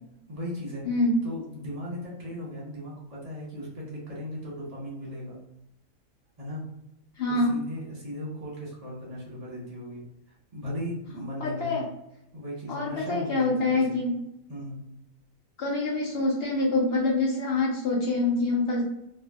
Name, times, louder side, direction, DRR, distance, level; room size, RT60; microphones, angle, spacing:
voice 1, 0.3-0.8 1.2-5.4 6.4-6.6 7.3-10.0 10.5-11.8 12.3-14.0 14.5-14.8, equal, 35° right, -5 dB, 0.7 m, -37 dB
voice 2, 0.9-1.2 7.2-7.6 11.4-11.8 12.7-14.2 15.6-18.8, left 2 dB, 60° left, -4 dB, 0.6 m, -25 dB
2.5 x 2.2 x 2.2 m, 0.84 s
omnidirectional pair, 1.6 m